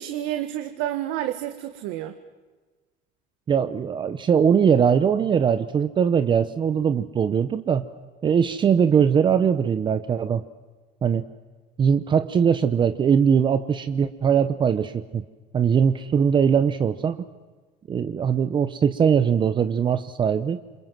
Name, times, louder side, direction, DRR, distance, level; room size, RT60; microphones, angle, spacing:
voice 1, 0.0-2.2, right 12 dB, 85° right, 8 dB, 1.9 m, -29 dB
voice 2, 3.5-7.8 8.2-10.4 11.0-11.2 11.8-15.2 15.5-17.3 17.9-20.6, right 7 dB, 25° right, 11 dB, 0.9 m, -21 dB
28.0 x 27.5 x 7.6 m, 1.3 s
cardioid pair, 165°, 19 cm